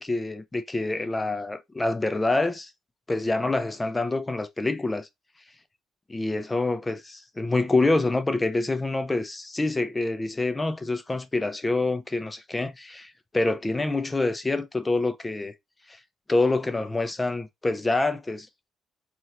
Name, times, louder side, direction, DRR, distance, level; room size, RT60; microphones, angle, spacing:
voice 1, 0.0-2.7 3.1-5.1 6.1-15.5 15.9-16.0 16.3-18.5, left 2 dB, 20° left, 0.7 m, -26 dB
4.0 x 3.2 x 2.5 m
figure-of-eight pair, 45°, 0 cm